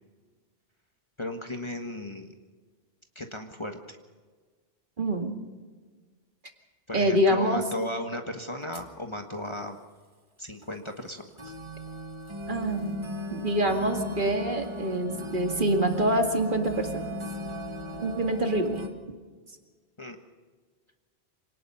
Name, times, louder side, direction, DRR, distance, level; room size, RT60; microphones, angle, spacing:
voice 1, 1.2-2.3 3.1-4.0 6.9-9.8 10.4-11.5 20.0-20.2, left 1 dB, 25° left, 5 dB, 1.5 m, -36 dB
voice 2, 5.0-5.3 6.9-7.6 12.5-13.0 13.3-16.9 18.0-18.8, right 1 dB, 50° right, 4 dB, 2.3 m, -25 dB
sound 1, 7.5-7.6 8.6-9.0 9.5-9.6 10.6-10.7 11.4-18.9, equal, 25° right, 1.7 m, -38 dB
26.0 x 18.5 x 5.6 m, 1.5 s
omnidirectional pair, 1.1 m